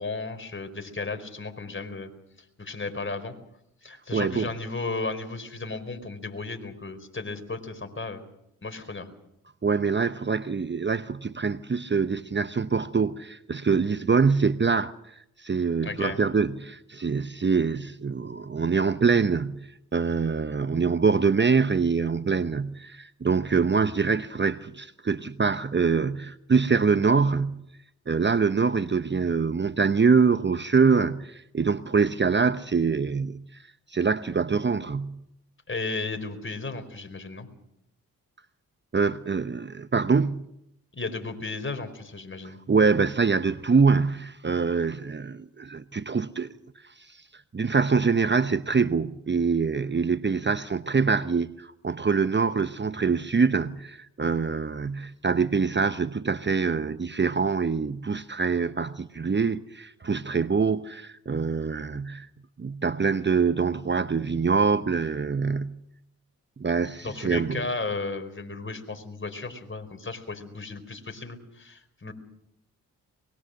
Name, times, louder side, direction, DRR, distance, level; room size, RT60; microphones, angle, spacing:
voice 1, 0.0-2.1 2.6-3.3 3.8-8.2 8.6-9.1 15.8-16.2 35.7-37.5 40.9-42.6 67.0-72.1, left 3 dB, 35° left, 4.6 m, -34 dB
voice 2, 4.1-4.5 9.6-14.9 15.4-27.7 28.1-33.5 33.9-35.2 38.9-40.5 42.4-46.5 47.1-47.2 47.5-62.3 62.6-65.8 66.6-67.7, right 5 dB, 30° right, 1.0 m, -24 dB
23.5 x 22.0 x 6.6 m
supercardioid pair, 50°, 36 cm